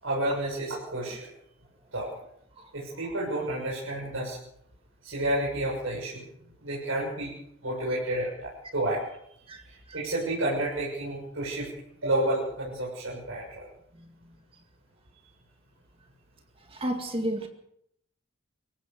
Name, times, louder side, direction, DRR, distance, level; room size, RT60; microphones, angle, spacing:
voice 1, 0.0-1.3 1.9-2.1 2.7-4.4 5.0-6.2 6.6-7.3 7.6-9.0 9.6-11.7 12.0-13.7, right 1 dB, 70° right, -4 dB, 6.8 m, -30 dB
voice 2, 16.7-17.5, right 1 dB, 25° right, 4 dB, 2.2 m, -32 dB
25.0 x 16.0 x 6.7 m, 0.74 s
head